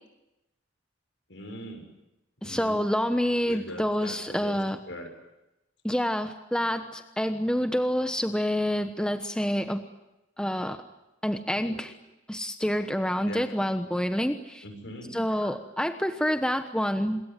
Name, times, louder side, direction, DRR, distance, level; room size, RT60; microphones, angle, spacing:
voice 1, 1.3-1.9 2.4-2.8 3.5-4.6 4.9-5.1 11.4-11.8 13.2-13.4 14.6-15.5, equal, 65° left, 5 dB, 6.7 m, -41 dB
voice 2, 2.4-4.8 5.8-9.8 10.4-10.8 11.2-11.9 12.3-14.6 15.1-17.2, equal, 5° left, 7 dB, 1.1 m, -27 dB
27.0 x 22.0 x 9.2 m, 0.93 s
head